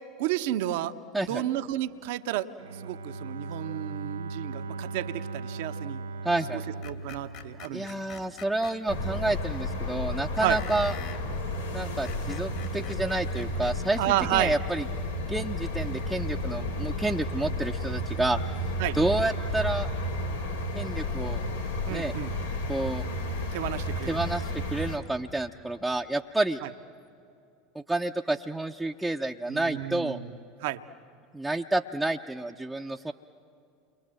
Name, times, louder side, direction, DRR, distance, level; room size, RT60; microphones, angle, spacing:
voice 1, 0.2-0.9 1.3-2.5 2.8-6.0 6.9-7.9 10.4-10.6 14.0-14.6 18.8-19.0 21.9-22.3 23.5-24.2 29.5-30.3 30.6-30.8, right 14 dB, 65° right, 11 dB, 0.9 m, -31 dB
Bowed string instrument, 2.6-8.5, right 3 dB, 80° right, 0.6 m, -38 dB
voice 2, 6.2-6.6 7.7-10.9 11.7-14.9 15.3-18.4 18.9-19.9 20.7-21.4 21.9-22.1 22.7-23.0 24.1-26.6 27.7-30.2 31.3-33.1, right 2 dB, 5° right, 1 dB, 0.7 m, -29 dB
Screech, 6.8-8.8 10.4-11.2 11.9-14.1, left 8 dB, 55° left, 2.8 m, -45 dB
sound 1, 8.9-25.0, left 1 dB, 85° left, 2.7 m, -32 dB
29.5 x 23.0 x 7.7 m, 2.4 s
hypercardioid pair, 80°, 0 cm